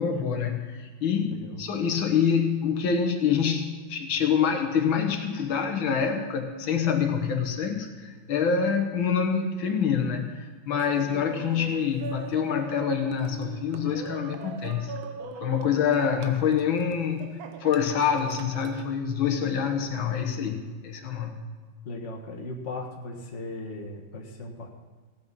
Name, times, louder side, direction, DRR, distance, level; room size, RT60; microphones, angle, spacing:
voice 1, 0.0-14.9 15.4-21.3, left 7 dB, 80° left, 4 dB, 2.0 m, -26 dB
voice 2, 1.3-1.6 21.8-24.7, left 2 dB, 40° left, 1 dB, 1.8 m, -37 dB
Laughter, 10.8-18.9, right 6 dB, 80° right, 1.7 m, -41 dB
16.0 x 8.8 x 5.4 m, 1.5 s
omnidirectional pair, 2.1 m